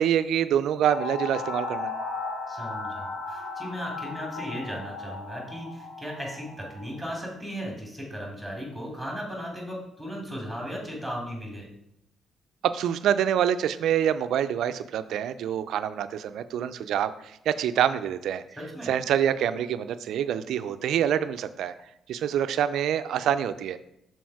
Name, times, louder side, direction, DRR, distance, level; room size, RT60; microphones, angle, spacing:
voice 1, 0.0-1.9 12.6-18.4 18.8-21.7 22.1-23.8, right 9 dB, 75° right, 12 dB, 0.4 m, -26 dB
sound 1, 0.8-6.9, left 3 dB, 55° left, 1.9 m, -36 dB
voice 2, 2.5-11.7 18.6-18.9, equal, ahead, -1 dB, 2.7 m, -36 dB
6.2 x 4.1 x 4.7 m, 0.79 s
cardioid pair, 90°, 0 cm